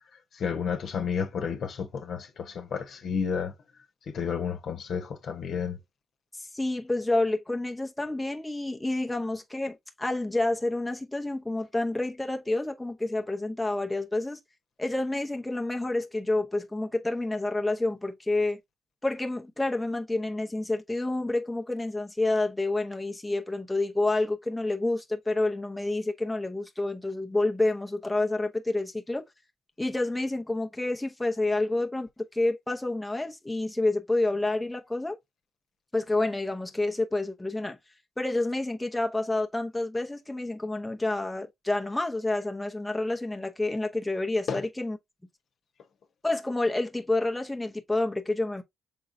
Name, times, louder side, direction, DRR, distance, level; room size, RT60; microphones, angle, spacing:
voice 1, 0.3-3.5 4.1-5.8 44.5-44.6, left 6 dB, 60° left, 1.0 m, -31 dB
voice 2, 6.4-14.4 14.8-18.6 19.0-29.3 29.8-35.2 35.9-37.8 38.2-45.0 46.2-48.6, left 2 dB, 10° left, 0.8 m, -29 dB
5.3 x 3.8 x 2.6 m
cardioid pair, 90°, 0 cm